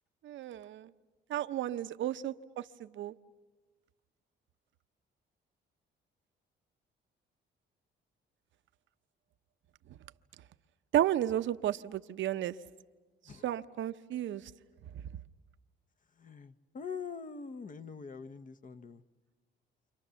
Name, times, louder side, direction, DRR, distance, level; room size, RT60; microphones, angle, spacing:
voice 1, 0.2-0.9 1.3-3.1 10.9-12.5 13.4-14.5, right 12 dB, 75° right, 11 dB, 0.8 m, -33 dB
voice 2, 16.2-19.0, left 5 dB, 40° left, 12 dB, 1.0 m, -44 dB
29.0 x 26.0 x 7.0 m, 1.3 s
cardioid pair, 90°, 20 cm